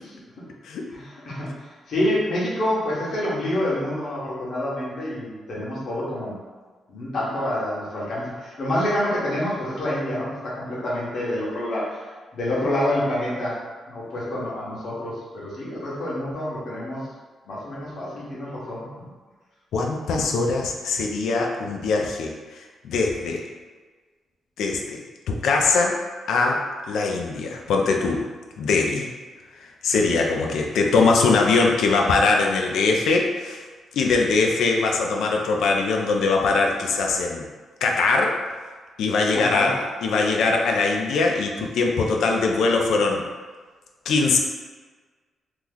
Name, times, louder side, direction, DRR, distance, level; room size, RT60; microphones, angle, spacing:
voice 1, 0.9-6.3 6.9-12.0 12.3-13.6 13.9-17.0 17.5-18.9 39.3-39.7, left 1 dB, 60° left, -7 dB, 1.2 m, -27 dB
voice 2, 19.7-23.4 24.6-25.0 25.3-26.0 26.3-26.6 26.9-28.2 28.6-29.1 29.8-33.6 33.9-37.4 37.8-38.4 39.0-43.2 44.1-44.4, left 4 dB, 85° left, 1 dB, 0.4 m, -22 dB
3.0 x 2.0 x 3.6 m, 1.4 s
cardioid pair, 115°, 0 cm